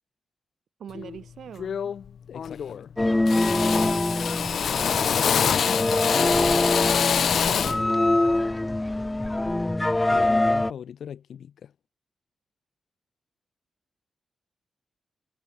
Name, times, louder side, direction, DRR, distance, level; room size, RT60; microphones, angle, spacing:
voice 1, 0.8-1.9 4.4-4.9, right 8 dB, 85° right, 3.9 m, -43 dB
Drill, 0.9-1.2 1.6-2.1 2.3-2.9 3.3-7.9, left 7 dB, 65° left, 0.5 m, -25 dB
voice 2, 2.3-3.5 6.1-7.9 9.6-11.7, left 8 dB, 85° left, 3.7 m, -40 dB
sound 1, 3.0-10.7, left 2 dB, 10° left, 0.4 m, -24 dB
wide cardioid pair, 150°, 0 cm